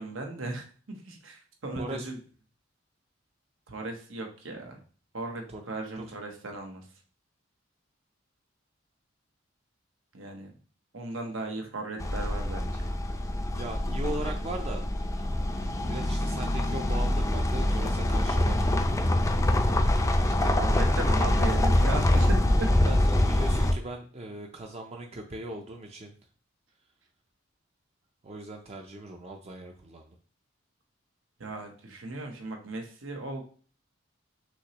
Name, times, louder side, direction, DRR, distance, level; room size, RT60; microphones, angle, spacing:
voice 1, 0.0-2.2 3.7-4.8 5.1-6.8 10.1-10.5 10.9-12.9 20.2-22.7 31.4-33.4, right 2 dB, 85° right, 3 dB, 1.0 m, -36 dB
voice 2, 1.8-2.1 5.5-5.6 6.0-6.1 13.6-14.8 15.9-18.7 22.8-26.1 28.2-30.2, right 2 dB, 35° right, 2 dB, 0.5 m, -39 dB
sound 1, 12.0-23.7, left 1 dB, 15° left, 0.4 m, -25 dB
6.1 x 2.9 x 3.0 m, 0.41 s
head